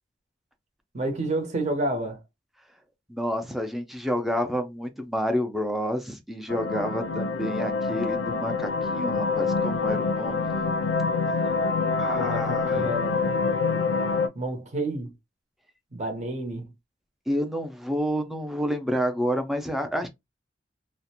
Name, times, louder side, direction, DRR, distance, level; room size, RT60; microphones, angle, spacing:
voice 1, 0.9-2.2 12.2-13.3 14.3-15.1 15.9-16.7, right 1 dB, 40° right, 0.8 m, -30 dB
voice 2, 3.1-10.6 12.0-12.9 17.3-20.1, equal, ahead, 0.4 m, -29 dB
sound 1, 6.5-14.3, left 4 dB, 80° left, 0.4 m, -26 dB
2.5 x 2.1 x 2.8 m
head